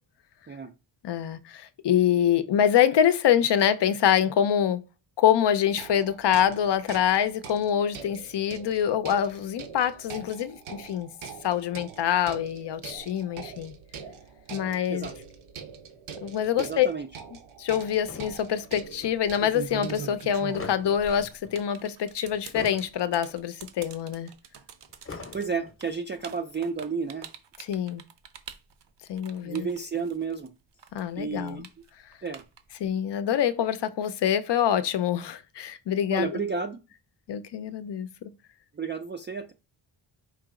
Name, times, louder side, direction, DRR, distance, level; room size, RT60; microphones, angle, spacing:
voice 1, 1.0-4.8 5.2-11.1 11.4-13.7 14.5-15.1 16.2-16.9 17.6-24.3 27.7-28.0 29.1-29.7 30.9-31.7 32.8-36.4 37.3-38.3, left 9 dB, 60° left, 0.6 m, -25 dB
sound 1, 5.7-21.3, right 6 dB, 90° right, 0.9 m, -44 dB
voice 2, 16.6-17.1 25.1-27.3 29.4-30.5 31.2-31.6 32.2-32.4 36.1-36.8 38.7-39.5, right 5 dB, 25° right, 0.4 m, -32 dB
sound 2, 17.9-19.2 20.2-21.6 22.3-23.4 23.6-23.7 24.9-25.9, left 4 dB, 30° left, 0.8 m, -42 dB
sound 3, 18.0-18.4 19.1-30.5 30.8-32.9, right 7 dB, 60° right, 0.7 m, -42 dB
4.8 x 2.9 x 3.7 m
wide cardioid pair, 115°, 47 cm